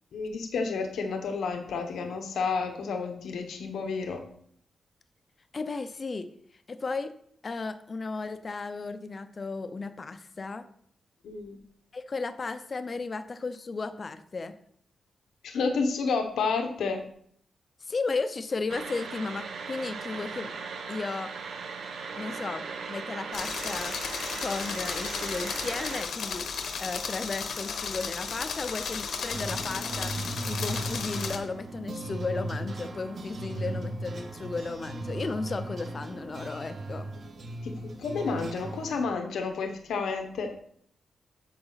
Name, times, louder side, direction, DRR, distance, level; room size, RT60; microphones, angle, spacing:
voice 1, 0.1-4.2 11.2-11.6 15.4-17.0 37.6-40.5, left 4 dB, 85° left, 4 dB, 1.1 m, -30 dB
voice 2, 5.5-6.3 6.7-7.1 7.4-10.7 11.9-14.5 17.8-20.5 20.9-21.3 22.1-24.0 24.4-26.5 26.8-37.1, left 3 dB, 30° left, 10 dB, 0.5 m, -34 dB
sound 1, 18.7-26.0, right 5 dB, 90° right, 1.2 m, -38 dB
sound 2, 23.3-31.4, left 5 dB, 65° left, 1.0 m, -34 dB
sound 3, 29.3-39.0, right 2 dB, 40° right, 1.0 m, -37 dB
8.8 x 6.8 x 4.0 m, 0.64 s
wide cardioid pair, 175°, 0 cm